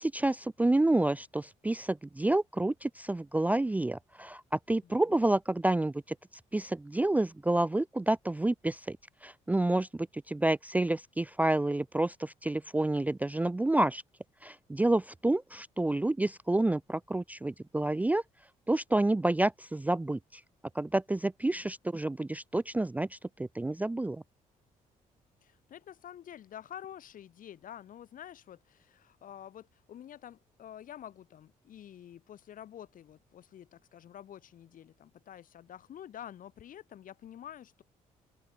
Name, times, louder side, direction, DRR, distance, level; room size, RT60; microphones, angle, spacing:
voice 1, 0.0-6.2 6.5-9.0 9.2-14.0 14.4-18.2 18.7-20.4 20.7-24.2, right 2 dB, 10° right, 0.4 m, -29 dB
voice 2, 4.8-5.2 21.4-21.7 25.4-37.8, left 10 dB, 65° left, 5.8 m, -48 dB
open air
supercardioid pair, 70°, 15 cm